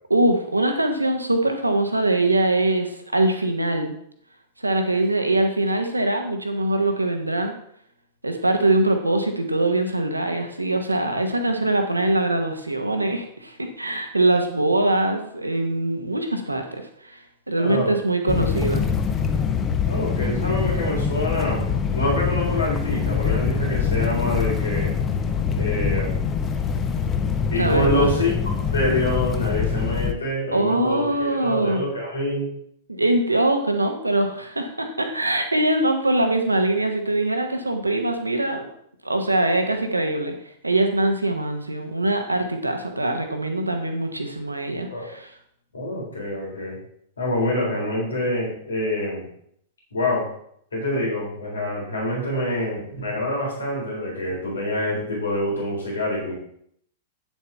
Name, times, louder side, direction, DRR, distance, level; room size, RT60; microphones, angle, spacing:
voice 1, 0.1-3.9 4.6-7.5 8.2-17.2 17.5-18.8 27.6-28.2 30.5-31.8 32.9-38.7 39.0-40.4 40.6-45.3, right 2 dB, 85° right, 5 dB, 1.0 m, -23 dB
voice 2, 17.6-17.9 19.9-25.0 25.5-26.2 27.5-28.3 28.7-32.5 44.9-45.1 45.7-46.8 47.2-49.3 49.9-50.3 50.7-56.3, left 1 dB, 75° left, -3 dB, 3.8 m, -26 dB
sound 1, 18.3-30.1, left 6 dB, 20° left, 0.8 m, -24 dB
9.4 x 7.2 x 3.5 m, 0.69 s
figure-of-eight pair, 100°, 0 cm